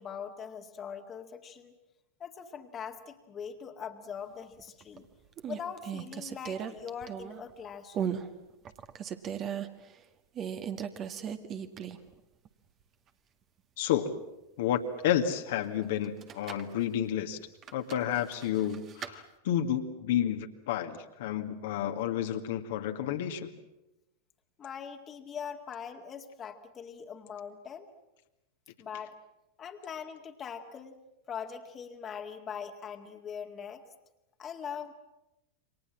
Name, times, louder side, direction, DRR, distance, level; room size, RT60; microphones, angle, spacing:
voice 1, 0.0-1.7 2.2-5.1 5.5-8.2 24.6-27.9 28.8-29.1 29.6-31.0 31.3-33.8 34.4-34.9, left 7 dB, 25° left, 4 dB, 2.1 m, -42 dB
sound 1, 4.6-5.0 5.4-7.5 7.9-8.3 8.6-9.7 10.3-12.1 12.4-12.5 16.0-16.7 17.6-19.1, right 8 dB, 30° right, 1.8 m, -37 dB
voice 2, 13.8-14.1 14.6-17.4 17.7-23.5, left 10 dB, 55° left, 6 dB, 2.0 m, -30 dB
28.5 x 25.5 x 7.5 m, 0.95 s
figure-of-eight pair, 90°, 0 cm